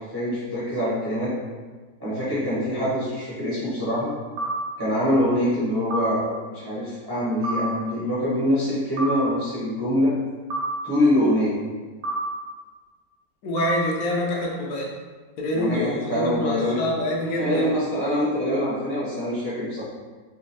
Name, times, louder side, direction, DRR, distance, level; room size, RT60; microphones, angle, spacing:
voice 1, 0.0-1.3 2.0-4.1 4.8-10.1 10.8-11.6 15.5-16.8 17.4-19.8, left 1 dB, 30° right, -10 dB, 0.4 m, -24 dB
sound 1, 4.4-4.6 5.9-6.1 7.4-7.6 9.0-9.2 10.5-10.7 12.0-12.2 13.6-13.8, right 2 dB, 85° right, 1.5 m, -27 dB
voice 2, 13.4-14.9 15.4-17.7, left 1 dB, 65° left, -1 dB, 0.9 m, -26 dB
4.1 x 2.6 x 2.7 m, 1.4 s
omnidirectional pair, 2.0 m